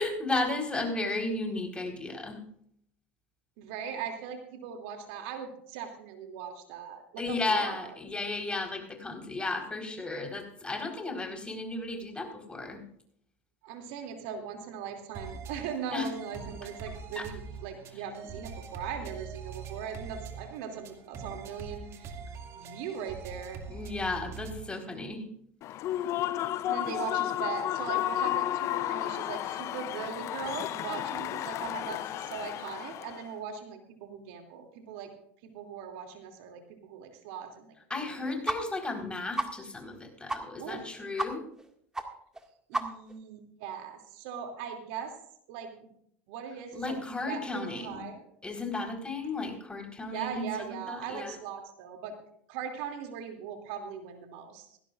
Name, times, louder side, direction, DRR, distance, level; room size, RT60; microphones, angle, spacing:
voice 1, 0.0-2.4 7.2-12.8 15.9-16.1 17.2-17.3 23.7-25.2 37.9-41.4 46.7-48.0 48.4-50.5 50.9-51.4, left 3 dB, 15° left, 2 dB, 4.2 m, -34 dB
voice 2, 3.6-8.0 13.6-22.2 22.5-23.6 26.7-35.1 35.4-37.7 38.0-38.3 40.6-40.9 42.7-45.1 45.5-45.9 46.3-48.2 50.1-52.1 52.5-54.8, right 7 dB, 65° right, 4 dB, 2.7 m, -40 dB
sound 1, 15.1-24.7, right 6 dB, 45° right, 2.4 m, -43 dB
Human voice / Cheering / Applause, 25.6-33.3, left 13 dB, 50° left, 0.6 m, -32 dB
sound 2, 38.5-38.6 38.9-39.0 39.4-39.5 39.9-40.0 40.3-40.4 40.7-40.8 41.2-41.3 41.6-41.7 41.9-42.0 42.3-42.4 42.7-43.1, right 2 dB, 10° right, 2.0 m, -31 dB
18.5 x 16.0 x 2.5 m, 0.67 s
hypercardioid pair, 80°, 7 cm